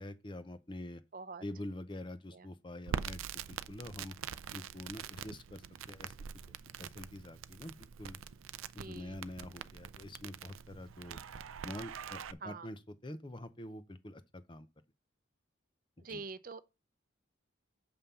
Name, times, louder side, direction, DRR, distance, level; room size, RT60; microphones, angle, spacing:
voice 1, 0.0-1.0 1.4-4.2 4.5-6.1 6.5-8.2 8.7-11.2 11.6-14.7 16.0-16.2, left 1 dB, 25° left, 0.6 m, -46 dB
voice 2, 1.1-1.4 2.3-2.5 8.8-9.2 12.4-12.7 16.0-16.6, right 4 dB, 45° right, 0.6 m, -45 dB
Crackle, 2.9-12.3, right 7 dB, 90° right, 0.5 m, -44 dB
6.9 x 5.7 x 5.6 m
head